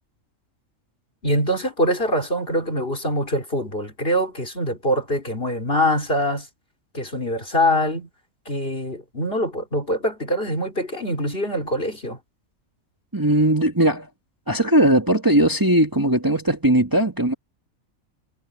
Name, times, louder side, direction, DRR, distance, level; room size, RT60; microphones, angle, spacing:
voice 1, 1.2-6.5 6.9-8.1 8.5-12.2, equal, 40° left, 4.2 m, -24 dB
voice 2, 13.1-14.1 14.5-17.3, right 1 dB, 15° right, 2.3 m, -19 dB
omnidirectional pair, 1.5 m